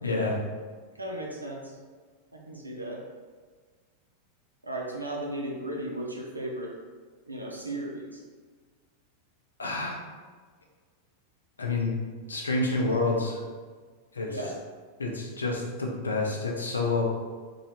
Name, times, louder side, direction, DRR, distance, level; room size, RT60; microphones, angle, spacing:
voice 1, 0.0-0.4 9.6-10.0 11.6-12.0 12.3-13.4 14.1-14.3 15.0-17.0, left 3 dB, 75° left, 0 dB, 0.5 m, -28 dB
voice 2, 0.9-1.8 2.3-3.0 4.6-6.7 7.3-8.2 14.3-14.6, right 1 dB, 85° right, -1 dB, 0.4 m, -35 dB
3.0 x 2.3 x 2.9 m, 1.5 s
figure-of-eight pair, 90°, 0 cm